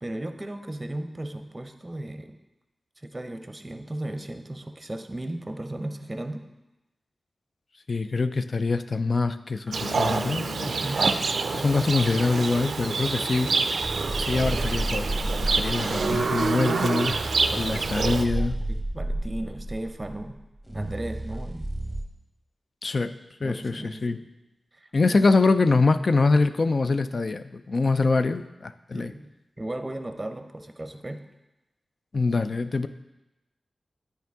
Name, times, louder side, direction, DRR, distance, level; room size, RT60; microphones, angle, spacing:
voice 1, 0.0-2.3 3.0-6.4 10.6-11.0 15.9-16.9 17.5-20.4 20.7-21.7 23.4-24.2 24.7-25.3 28.9-29.3 29.6-31.2, right 1 dB, 30° right, 7 dB, 0.6 m, -36 dB
voice 2, 7.9-10.7 11.5-13.5 14.2-17.1 17.6-18.6 22.8-23.1 23.4-24.2 24.9-29.1 32.1-32.9, left 3 dB, 60° left, 11 dB, 0.4 m, -24 dB
Keyboard (musical), 9.7-11.6, left 6 dB, 15° left, 1.0 m, -44 dB
Livestock farm animals working animals, 9.7-18.2, right 4 dB, 80° right, 0.3 m, -27 dB
sound 1, 13.8-22.0, right 1 dB, 10° right, 1.0 m, -31 dB
9.2 x 4.6 x 3.5 m, 0.98 s
cardioid pair, 45°, 0 cm